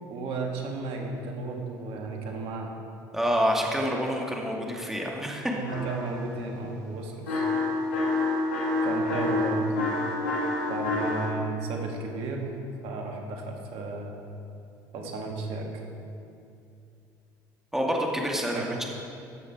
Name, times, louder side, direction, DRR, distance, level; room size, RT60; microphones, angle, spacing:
voice 1, 0.1-2.7 5.6-7.5 8.8-9.7 10.7-12.5 12.8-14.1 14.9-15.7 18.5-18.7, right 3 dB, 65° right, 1 dB, 1.8 m, -33 dB
voice 2, 3.1-5.5 17.7-18.8, equal, 5° right, -1 dB, 2.1 m, -27 dB
sound 1, 5.7-6.2 7.3-11.3, left 2 dB, 80° left, 2.6 m, -27 dB
15.0 x 6.3 x 4.8 m, 2.6 s
hypercardioid pair, 70°, 10 cm